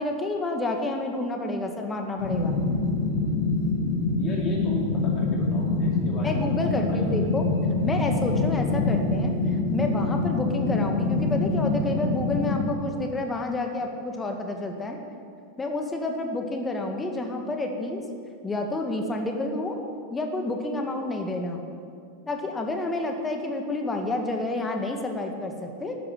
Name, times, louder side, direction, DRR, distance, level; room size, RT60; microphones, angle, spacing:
voice 1, 0.0-2.6 6.2-7.5 7.8-15.0 15.6-18.0 18.4-19.8 20.1-21.6 22.3-26.0, left 2 dB, 15° left, 3 dB, 1.9 m, -29 dB
sound 1, 2.2-12.5, left 3 dB, 65° left, 4.1 m, -25 dB
voice 2, 4.2-7.2, left 2 dB, 30° left, -2 dB, 3.5 m, -35 dB
13.0 x 11.5 x 8.6 m, 2.3 s
figure-of-eight pair, 90°, 0 cm